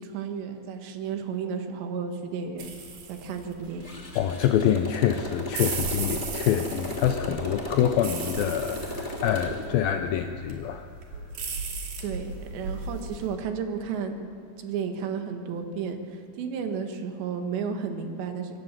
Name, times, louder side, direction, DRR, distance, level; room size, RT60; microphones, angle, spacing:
voice 1, 0.0-2.8 3.1-3.8 12.0-14.2 14.6-18.6, right 6 dB, 80° right, 6 dB, 3.9 m, -33 dB
sound 1, 2.6-13.3, right 4 dB, 55° right, 3.8 m, -37 dB
Motorcycle, 3.8-9.7, left 1 dB, 15° left, 2.2 m, -36 dB
voice 2, 4.2-10.9, left 10 dB, 80° left, 7 dB, 2.1 m, -26 dB
25.0 x 19.0 x 7.5 m, 2.7 s
omnidirectional pair, 5.0 m